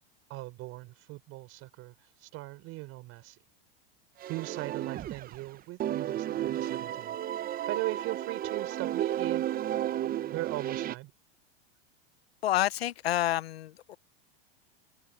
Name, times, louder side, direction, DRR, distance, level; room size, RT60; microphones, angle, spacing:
voice 1, 0.3-3.4 4.3-7.2 7.7-9.6 10.3-11.1, right 20 dB, 50° right, 4.6 m, -39 dB
sound 1, 4.2-5.5 5.8-10.9, right 12 dB, 30° right, 0.9 m, -33 dB
voice 2, 12.4-14.0, left 13 dB, 90° left, 0.9 m, -29 dB
hypercardioid pair, 115°, 30 cm